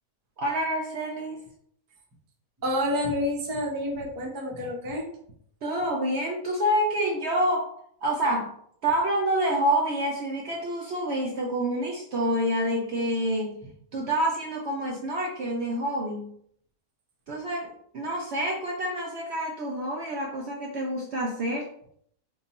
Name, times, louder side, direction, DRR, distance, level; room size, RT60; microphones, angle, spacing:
voice 1, 0.4-1.4 5.6-7.7 8.0-8.5 8.8-13.6 13.9-16.3 17.3-21.9, right 1 dB, 60° right, -1 dB, 0.7 m, -27 dB
voice 2, 2.6-5.1, left 1 dB, 25° right, -2 dB, 0.5 m, -28 dB
3.6 x 2.3 x 4.0 m, 0.66 s
omnidirectional pair, 1.6 m